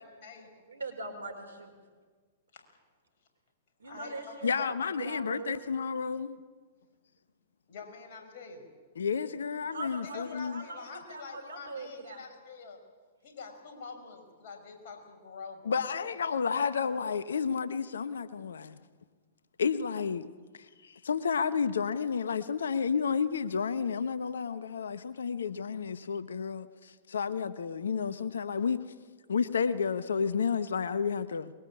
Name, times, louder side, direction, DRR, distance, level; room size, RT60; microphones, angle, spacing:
voice 1, 0.0-0.5 2.5-2.6 3.8-4.7 7.7-8.7 10.0-12.8 13.2-15.8, left 5 dB, 55° left, 6.0 m, -46 dB
voice 2, 0.7-1.7 3.8-5.6 9.7-12.2 16.8-17.0, right 3 dB, 80° right, 4.9 m, -41 dB
voice 3, 4.4-6.4 9.0-10.6 15.6-18.8 19.6-20.3 20.8-28.8 29.3-31.5, left 6 dB, 75° left, 1.0 m, -31 dB
23.0 x 21.5 x 8.6 m
hypercardioid pair, 110°, 0 cm